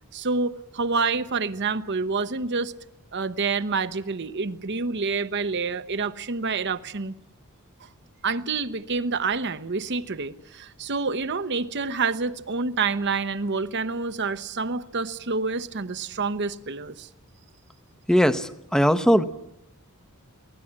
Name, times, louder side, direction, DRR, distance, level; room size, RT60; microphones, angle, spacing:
voice 1, 0.1-2.7 3.1-7.1 8.2-17.1, right 4 dB, 50° right, 1.0 m, -27 dB
voice 2, 18.1-19.2, equal, 5° left, 0.9 m, -20 dB
23.5 x 18.0 x 8.7 m
head